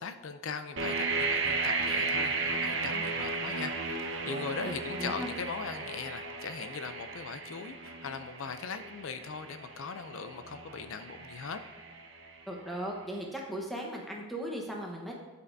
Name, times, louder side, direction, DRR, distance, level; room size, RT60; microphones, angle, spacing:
voice 1, 0.0-3.7 4.0-11.6, left 5 dB, 65° left, 9 dB, 0.5 m, -39 dB
sound 1, 0.8-12.6, right 3 dB, 55° right, 0.9 m, -35 dB
voice 2, 5.0-5.3 12.5-15.1, right 1 dB, ahead, -1 dB, 1.0 m, -37 dB
9.6 x 8.3 x 2.6 m, 1.2 s
head